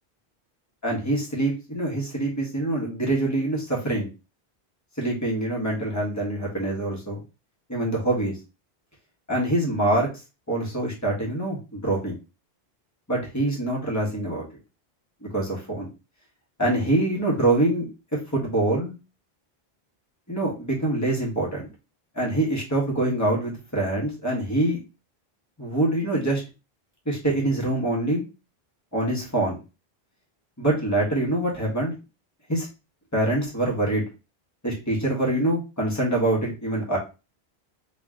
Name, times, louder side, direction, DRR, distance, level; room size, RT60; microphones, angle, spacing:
voice 1, 0.8-4.1 5.0-7.2 7.7-8.4 9.3-10.1 10.5-12.2 13.1-14.4 15.2-15.9 16.6-17.9 18.3-18.9 20.3-21.7 22.1-24.8 25.6-26.4 27.0-28.2 28.9-29.6 30.6-31.9 32.5-32.7 33.1-34.0 34.6-37.0, right 1 dB, 15° left, -4 dB, 1.6 m, -25 dB
3.5 x 3.1 x 3.7 m, 0.29 s
omnidirectional pair, 1.1 m